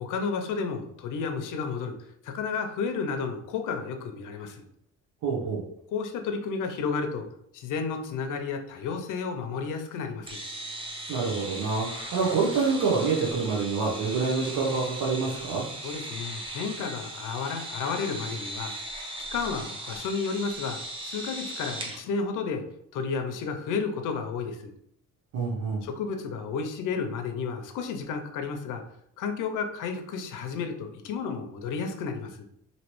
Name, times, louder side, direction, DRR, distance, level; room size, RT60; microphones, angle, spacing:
voice 1, 0.0-2.0 2.2-4.6 5.9-7.3 7.5-10.4 15.8-18.7 19.3-22.6 22.9-24.7 25.8-28.8 29.2-32.5, left 5 dB, 70° left, 5 dB, 0.6 m, -32 dB
voice 2, 5.2-5.6 11.1-15.6 25.3-25.8, right 4 dB, 85° right, -3 dB, 0.8 m, -27 dB
sound 1, 10.3-22.0, right 1 dB, 15° right, 0.4 m, -38 dB
3.0 x 2.7 x 3.0 m, 0.74 s
cardioid pair, 165°, 32 cm